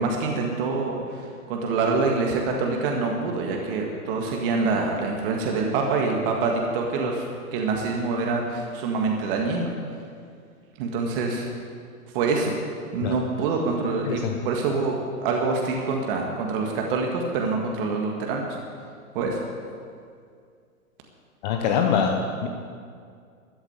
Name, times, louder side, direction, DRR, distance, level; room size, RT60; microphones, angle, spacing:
voice 1, 0.0-7.3 7.5-9.7 10.8-11.5 12.1-12.5 12.9-18.6 19.1-19.4, right 4 dB, 35° right, 1 dB, 1.9 m, -25 dB
voice 2, 14.0-14.4 21.4-22.5, left 6 dB, 30° left, 3 dB, 0.9 m, -24 dB
14.0 x 8.0 x 9.1 m, 2.2 s
hypercardioid pair, 135°, 44 cm